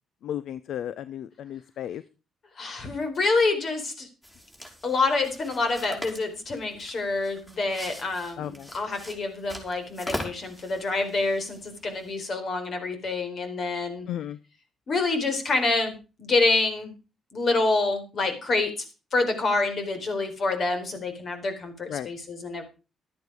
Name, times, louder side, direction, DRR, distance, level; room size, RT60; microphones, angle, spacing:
voice 1, 0.2-2.0 8.4-8.7 14.1-14.4 21.9-22.1, left 10 dB, 75° left, 16 dB, 0.6 m, -34 dB
voice 2, 2.6-4.1 4.8-14.1 14.9-16.9 17.3-18.7 19.1-22.6, left 3 dB, 50° left, 7 dB, 4.5 m, -27 dB
sound 1, 4.2-12.2, equal, 15° left, 4.9 m, -42 dB
12.5 x 11.0 x 4.8 m, 0.32 s
cardioid pair, 90°, 0 cm